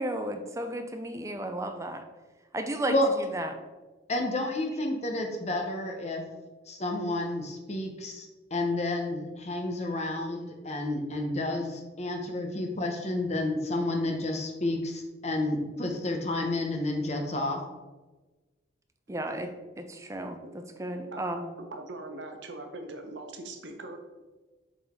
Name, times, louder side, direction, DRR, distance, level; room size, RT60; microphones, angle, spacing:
voice 1, 0.0-2.0 2.5-2.9 3.3-3.5 19.1-19.5 19.8-20.4 20.8-21.5, right 1 dB, 15° right, 6 dB, 0.5 m, -33 dB
voice 2, 4.1-6.2 6.7-17.6, left 2 dB, 35° left, 3 dB, 0.9 m, -30 dB
voice 3, 21.1-21.4 21.7-24.0, right 2 dB, 80° right, 4 dB, 0.9 m, -41 dB
7.4 x 3.9 x 3.7 m, 1.2 s
head